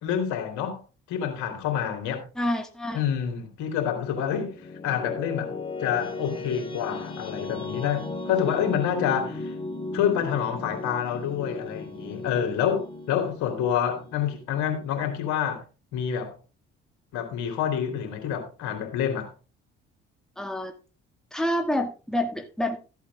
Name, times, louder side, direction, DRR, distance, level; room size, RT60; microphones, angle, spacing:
voice 1, 0.0-0.8 1.1-2.2 2.9-5.5 5.8-9.5 9.9-15.6 15.9-16.4 17.1-19.3, left 9 dB, 70° left, 3.2 m, -27 dB
voice 2, 2.4-3.0 20.4-20.7 21.3-22.8, left 1 dB, ahead, 1.9 m, -27 dB
sound 1, 4.5-15.1, left 2 dB, 15° left, 2.7 m, -37 dB
14.0 x 8.2 x 3.5 m
hypercardioid pair, 60°, 31 cm